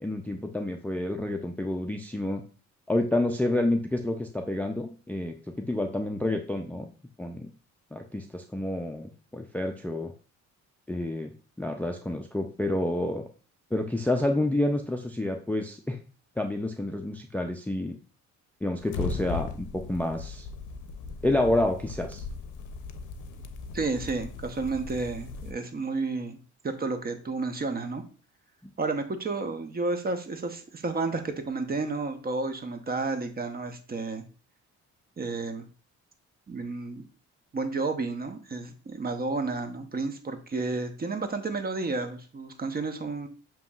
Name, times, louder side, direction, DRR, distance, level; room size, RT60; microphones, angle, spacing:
voice 1, 0.0-2.4 2.9-6.9 7.2-7.5 7.9-10.1 10.9-11.3 11.6-13.3 13.7-16.0 16.4-17.9 18.6-20.5 21.2-22.2, left 1 dB, 5° left, 3 dB, 0.4 m, -29 dB
sound 1, 18.8-25.5, left 4 dB, 75° left, 0.6 m, -38 dB
voice 2, 23.7-26.4 26.6-28.0 28.8-34.2 35.2-35.7 36.5-37.0 37.5-43.3, right 3 dB, 30° right, 7 dB, 0.8 m, -31 dB
6.9 x 3.0 x 2.3 m, 0.37 s
cardioid pair, 90°, 30 cm